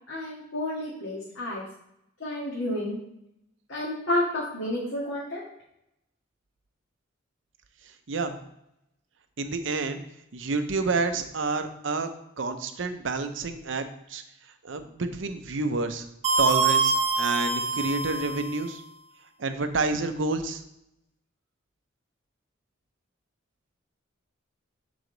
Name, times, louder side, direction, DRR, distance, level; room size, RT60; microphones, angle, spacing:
voice 1, 0.1-1.6 2.2-3.0 3.7-5.4, left 1 dB, 85° left, -6 dB, 1.7 m, -30 dB
voice 2, 9.4-10.0 10.3-12.1 12.4-14.2 14.6-16.1 16.4-18.8 19.4-20.6, right 3 dB, 70° right, 8 dB, 0.7 m, -29 dB
sound 1, 16.2-18.6, right 4 dB, 30° right, 0.9 m, -25 dB
7.0 x 4.9 x 3.9 m, 0.80 s
head